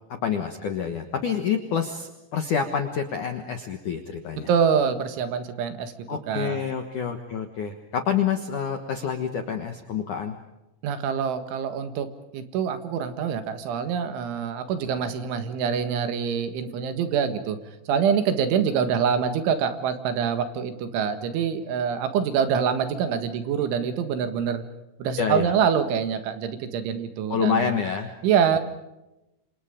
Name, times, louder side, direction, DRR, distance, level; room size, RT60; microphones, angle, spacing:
voice 1, 0.2-4.5 6.1-10.4 25.2-25.5 27.3-28.1, left 7 dB, 70° left, 6 dB, 1.9 m, -27 dB
voice 2, 4.5-6.6 10.8-12.1 12.3-17.6 17.9-24.6 25.0-27.7 28.2-28.6, right 7 dB, 75° right, 9 dB, 4.0 m, -25 dB
28.0 x 27.0 x 5.2 m, 0.94 s
omnidirectional pair, 5.8 m